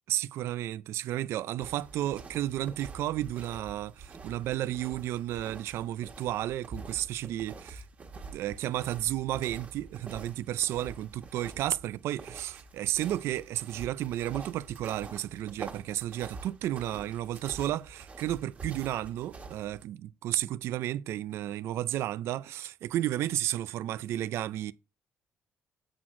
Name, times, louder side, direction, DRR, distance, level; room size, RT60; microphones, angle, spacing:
voice 1, 0.1-7.8 8.3-24.7, right 13 dB, 80° right, 0.4 m, -32 dB
sound 1, 1.6-19.8, right 3 dB, 30° right, 1.3 m, -46 dB
7.7 x 6.0 x 3.7 m
cardioid pair, 170°, 4 cm